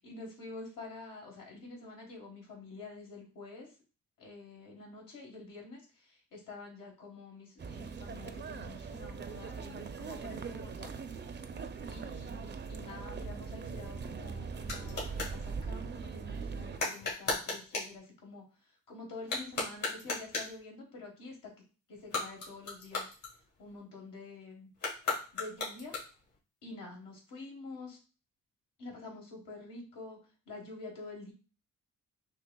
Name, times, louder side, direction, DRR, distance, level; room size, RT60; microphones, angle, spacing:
voice 1, 0.0-3.7 4.2-10.9 11.9-21.5 21.9-23.1 23.6-24.7 25.3-25.9 26.6-28.0 28.8-30.2 30.4-31.3, left 3 dB, 85° left, -1 dB, 1.6 m, -47 dB
sound 1, 7.6-16.8, right 5 dB, 35° right, 0.4 m, -41 dB
sound 2, 13.7-15.4 16.7-18.0 19.2-20.6 22.0-23.8 24.7-26.4, left 3 dB, 70° left, 2.0 m, -37 dB
6.0 x 2.7 x 2.2 m, 0.35 s
cardioid pair, 75°, 33 cm